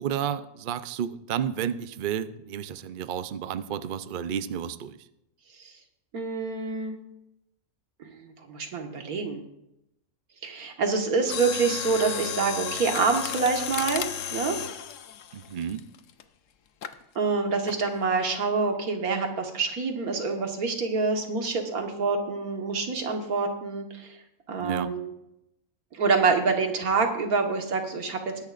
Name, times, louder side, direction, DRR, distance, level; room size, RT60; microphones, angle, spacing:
voice 1, 0.0-5.0 15.3-15.8 24.6-24.9, right 8 dB, 60° right, 12 dB, 0.5 m, -31 dB
voice 2, 6.1-7.0 8.0-9.4 10.4-14.6 17.2-24.2 24.5-25.1 25.9-28.4, right 4 dB, 80° right, 4 dB, 1.9 m, -27 dB
Mechanisms, 11.2-16.2 16.8-17.0 17.7-18.0 18.3-18.4, left 9 dB, 65° left, 1.0 m, -33 dB
21.0 x 10.5 x 2.5 m, 0.85 s
omnidirectional pair, 1.5 m